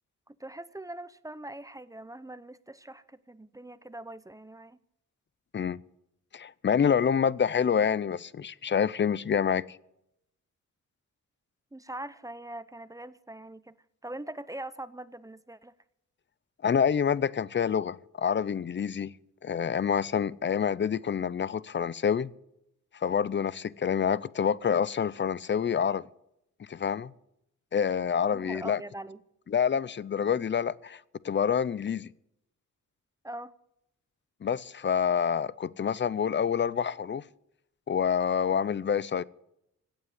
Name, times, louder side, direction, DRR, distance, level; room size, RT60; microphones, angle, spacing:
voice 1, 0.3-4.8 11.7-13.8 14.0-15.7 28.3-29.2 33.2-33.5, right 1 dB, 10° right, 0.6 m, -42 dB
voice 2, 6.3-9.6 16.6-19.1 19.4-22.3 22.9-26.0 26.7-27.1 27.7-28.8 29.5-32.1 34.4-37.2 37.9-39.2, left 7 dB, 35° left, 0.5 m, -27 dB
16.5 x 8.6 x 9.9 m
wide cardioid pair, 125°, 32 cm